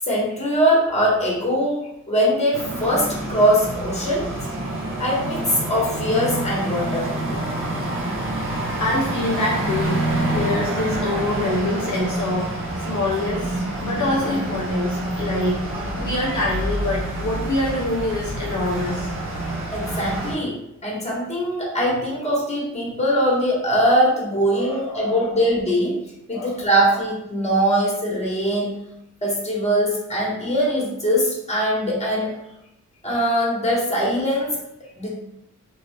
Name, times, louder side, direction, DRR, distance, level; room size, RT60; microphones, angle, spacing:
voice 1, 0.0-4.3 5.0-7.1 19.7-26.0 26.3-28.8 29.2-32.4 33.0-35.1, equal, 20° left, -4 dB, 1.1 m, -22 dB
sound 1, 2.5-20.3, right 1 dB, 40° right, 0.8 m, -27 dB
voice 2, 8.8-19.1 24.6-25.4 26.3-27.0, left 2 dB, 65° left, -3 dB, 0.7 m, -26 dB
2.7 x 2.4 x 3.3 m, 0.84 s
wide cardioid pair, 95°, 32 cm